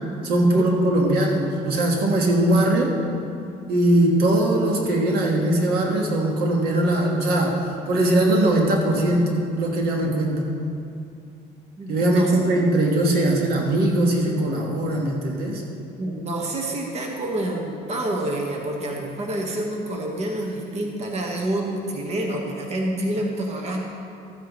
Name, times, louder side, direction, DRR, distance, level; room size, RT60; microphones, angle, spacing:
voice 1, 0.2-3.0 3.7-10.5 11.9-15.6, right 1 dB, 70° right, 0 dB, 1.5 m, -20 dB
voice 2, 11.8-12.4 16.0-23.8, right 1 dB, 40° right, 0 dB, 1.4 m, -28 dB
14.0 x 9.3 x 3.1 m, 2.5 s
cardioid pair, 110°, 17 cm